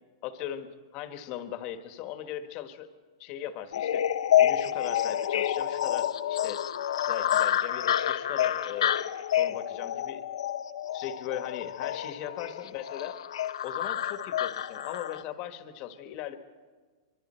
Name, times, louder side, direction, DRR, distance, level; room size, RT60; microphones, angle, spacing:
voice 1, 0.2-2.9 3.2-4.0 4.4-6.6 6.9-9.0 9.3-10.2 10.9-13.2 13.6-16.4, left 11 dB, 35° left, 8 dB, 1.4 m, -39 dB
sound 1, 3.7-15.2, left 11 dB, 80° left, 0.7 m, -28 dB
25.5 x 23.5 x 4.4 m, 1.4 s
supercardioid pair, 155°, 3 cm